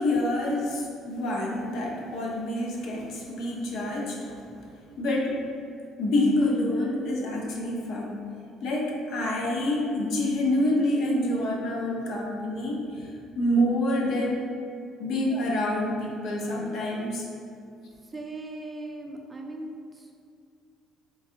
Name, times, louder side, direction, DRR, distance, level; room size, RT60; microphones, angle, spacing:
voice 1, 0.0-4.7 5.0-5.4 6.0-8.2 8.6-14.4 15.0-17.3, left 1 dB, 70° left, -2 dB, 0.6 m, -27 dB
voice 2, 18.0-20.2, right 2 dB, 20° right, 1 dB, 0.3 m, -39 dB
3.4 x 3.0 x 2.8 m, 2.4 s
cardioid pair, 130°, 0 cm